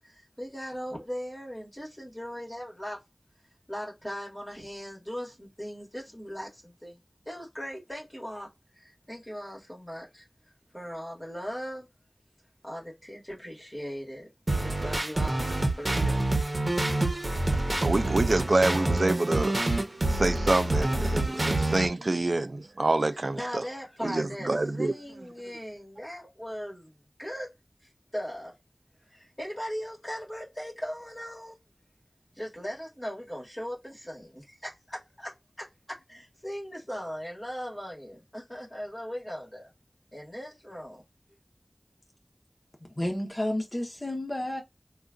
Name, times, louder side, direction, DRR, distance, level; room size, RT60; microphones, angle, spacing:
voice 1, 0.0-3.0 3.7-7.0 7.3-8.5 8.7-10.3 10.7-11.9 12.6-14.3 14.6-16.5 17.8-17.9 23.4-27.5 28.1-28.5 29.1-31.6 32.3-39.7 40.1-41.0, equal, 20° left, 2.1 m, -39 dB
sound 1, 14.5-21.9, right 2 dB, 50° right, 0.9 m, -27 dB
voice 2, 17.8-19.6 20.1-23.6 24.0-24.9, right 2 dB, 75° right, 0.3 m, -26 dB
voice 3, 43.0-44.6, left 1 dB, 40° left, 1.0 m, -31 dB
3.7 x 2.4 x 2.4 m
wide cardioid pair, 45°, 0 cm